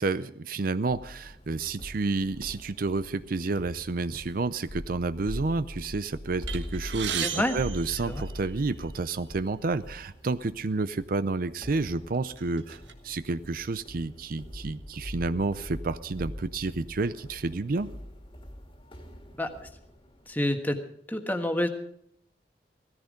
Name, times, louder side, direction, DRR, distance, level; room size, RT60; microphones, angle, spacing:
voice 1, 0.0-17.9, right 3 dB, 50° right, 13 dB, 0.5 m, -30 dB
sound 1, 0.9-20.4, equal, 30° left, 2.1 m, -43 dB
sound 2, 6.5-8.8 9.6-9.8 10.1-10.3 11.1-11.3 11.8-12.9, right 8 dB, 85° right, 1.5 m, -36 dB
voice 2, 7.2-7.6 8.1-8.2 19.4-19.5 20.3-20.8 21.1-21.7, left 1 dB, 10° left, 6 dB, 1.5 m, -27 dB
17.0 x 14.0 x 5.2 m, 0.69 s
head